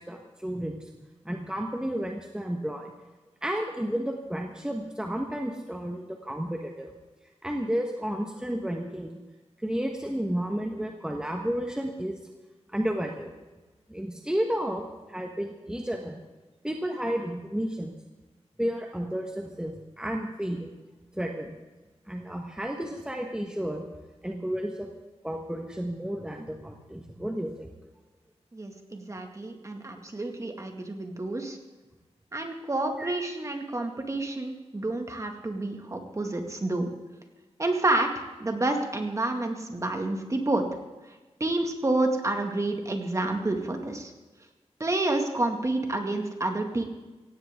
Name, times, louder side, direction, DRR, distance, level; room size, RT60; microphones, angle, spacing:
voice 1, 0.0-2.9 3.4-6.9 7.4-9.2 9.6-12.2 12.7-13.3 13.9-16.2 16.6-17.9 18.6-20.7 21.2-21.6 22.1-23.8 24.2-24.9 25.2-27.7 33.0-33.1, equal, 5° right, 2 dB, 1.4 m, -32 dB
voice 2, 28.5-31.6 32.3-36.9 37.6-40.6 41.4-44.1 44.8-46.8, right 2 dB, 25° right, 4 dB, 2.2 m, -29 dB
17.0 x 16.5 x 3.8 m, 1.2 s
wide cardioid pair, 95°, 11 cm